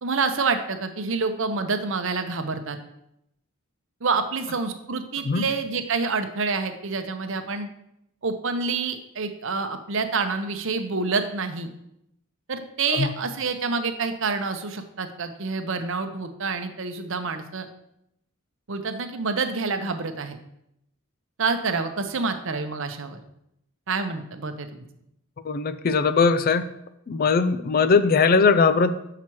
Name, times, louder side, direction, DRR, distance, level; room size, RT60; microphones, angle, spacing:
voice 1, 0.0-2.8 4.0-7.7 8.2-11.7 12.5-17.7 18.7-20.4 21.4-23.2 23.9-24.7, right 4 dB, 60° right, 8 dB, 0.8 m, -27 dB
voice 2, 25.4-26.7 27.1-28.9, left 4 dB, 45° left, 12 dB, 0.4 m, -20 dB
7.3 x 5.8 x 4.6 m, 0.79 s
head